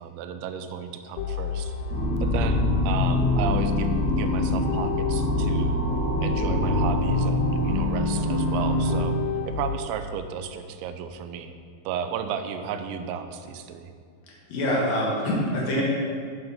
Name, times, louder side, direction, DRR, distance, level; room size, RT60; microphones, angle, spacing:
voice 1, 0.0-1.8 2.2-5.8 6.2-9.2 9.4-11.5 11.9-13.9, right 7 dB, 90° right, 9 dB, 3.0 m, -33 dB
sound 1, 1.2-9.8, left 5 dB, 85° left, 2.9 m, -30 dB
sound 2, 1.9-9.0, left 1 dB, 30° right, 2.1 m, -25 dB
voice 2, 14.5-15.8, equal, 60° left, -3 dB, 2.9 m, -25 dB
8.1 x 7.8 x 5.7 m, 2.3 s
omnidirectional pair, 5.1 m